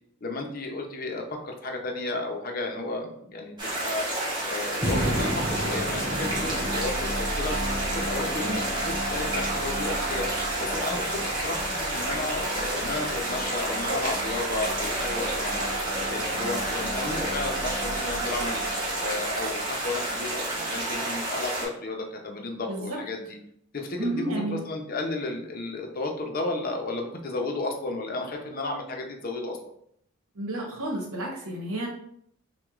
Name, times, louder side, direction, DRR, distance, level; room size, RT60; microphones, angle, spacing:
voice 1, 0.2-4.1 4.4-7.6 7.9-15.7 16.1-18.7 19.0-23.4 23.7-29.6, left 2 dB, 45° left, 2 dB, 0.6 m, -33 dB
sound 1, 3.6-21.7, right 1 dB, 20° right, 1.1 m, -30 dB
sound 2, 4.8-21.0, right 1 dB, 35° right, 1.5 m, -34 dB
voice 2, 24.0-24.6 30.3-31.9, right 1 dB, 90° right, 0 dB, 1.0 m, -31 dB
5.9 x 2.2 x 2.4 m, 0.69 s
head